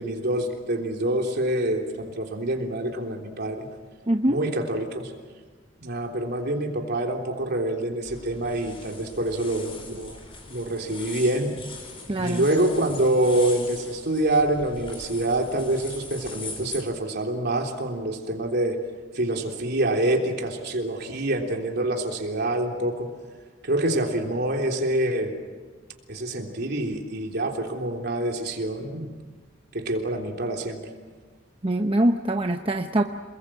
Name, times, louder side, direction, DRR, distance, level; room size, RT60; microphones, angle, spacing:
voice 1, 0.0-3.7 4.3-5.1 5.8-10.2 10.5-11.6 12.2-18.8 19.1-23.1 23.6-25.4 26.1-29.1 29.7-30.8, right 1 dB, 55° right, 2 dB, 3.5 m, -26 dB
voice 2, 4.1-4.4 12.1-12.4 31.6-33.0, right 1 dB, 30° right, 4 dB, 0.9 m, -23 dB
sound 1, 8.0-16.8, left 3 dB, 30° left, 4.8 m, -41 dB
28.5 x 21.0 x 7.6 m, 1.4 s
head